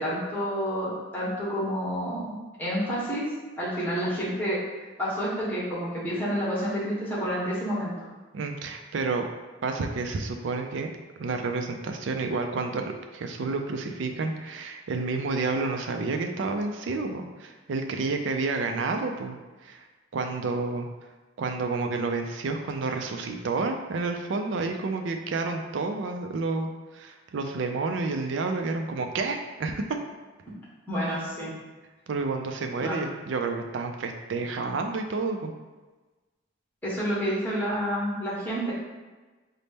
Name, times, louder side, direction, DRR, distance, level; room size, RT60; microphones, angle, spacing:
voice 1, 0.0-3.2 3.6-4.6 5.0-7.9 30.9-31.5 32.8-33.0 36.8-38.7, equal, 10° left, -8 dB, 1.1 m, -29 dB
voice 2, 8.3-9.3 9.6-10.9 11.2-19.4 19.6-19.8 20.1-20.9 21.4-29.8 32.1-35.5, right 3 dB, 60° right, 5 dB, 0.4 m, -30 dB
4.0 x 2.1 x 3.4 m, 1.2 s
head